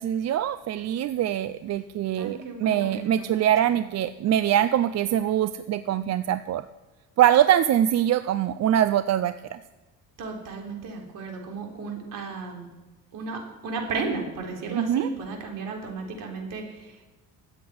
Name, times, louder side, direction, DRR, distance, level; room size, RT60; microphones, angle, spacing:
voice 1, 0.0-6.7 7.2-9.6 14.7-15.1, right 11 dB, 50° right, 13 dB, 0.5 m, -23 dB
voice 2, 2.2-3.8 10.2-12.7 13.1-17.1, right 4 dB, 70° right, 1 dB, 3.9 m, -34 dB
14.0 x 8.3 x 9.5 m, 1.2 s
cardioid pair, 130°, 34 cm